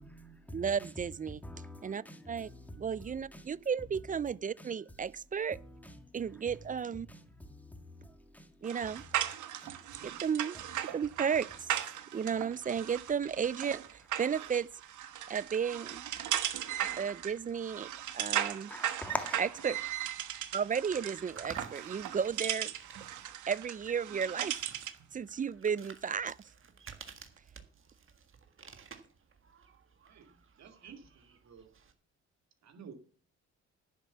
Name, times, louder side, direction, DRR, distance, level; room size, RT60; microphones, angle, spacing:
voice 1, 0.0-5.2 5.5-10.4 10.7-11.0 11.5-12.3 18.7-19.8 26.9-27.1, left 1 dB, 5° left, 2.0 m, -47 dB
voice 2, 0.5-1.4 1.8-2.5 2.8-5.6 6.1-7.1 8.6-9.0 10.0-10.6 10.9-11.7 12.1-13.8 14.2-14.7 15.3-16.1 17.0-17.9 18.1-18.7 19.7-19.8 20.5-22.7 23.5-24.5 25.1-26.4, right 7 dB, 25° right, 0.4 m, -33 dB
sound 1, 8.6-25.0, right 12 dB, 80° right, 1.2 m, -37 dB
sound 2, 12.9-31.9, right 6 dB, 45° right, 1.7 m, -55 dB
voice 3, 30.0-31.7 32.6-32.9, right 7 dB, 65° right, 2.3 m, -53 dB
10.5 x 7.2 x 6.9 m
cardioid pair, 90°, 30 cm